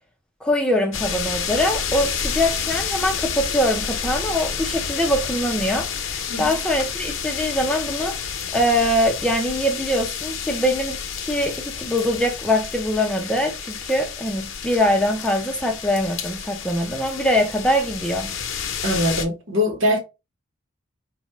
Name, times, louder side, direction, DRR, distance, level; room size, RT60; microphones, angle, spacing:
voice 1, 0.4-8.2 8.5-18.3, equal, 5° left, 0.6 m, -23 dB
sound 1, 0.9-19.3, left 7 dB, 80° left, 0.8 m, -30 dB
voice 2, 18.8-20.0, left 1 dB, 80° right, 1.4 m, -22 dB
4.1 x 2.5 x 3.1 m
head